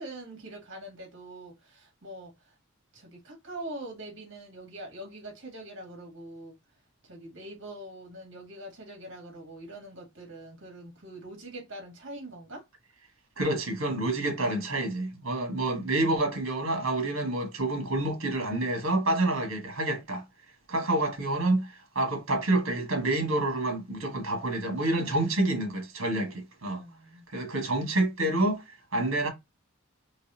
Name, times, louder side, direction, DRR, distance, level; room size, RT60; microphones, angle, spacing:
voice 1, 0.0-2.5 2.9-6.6 7.0-12.6 20.7-20.9 26.7-27.3, right 1 dB, 60° right, 2.1 m, -43 dB
voice 2, 13.4-20.2 20.7-26.8 27.3-28.6 28.9-29.3, right 2 dB, 80° right, 1.5 m, -28 dB
4.0 x 3.2 x 2.7 m
head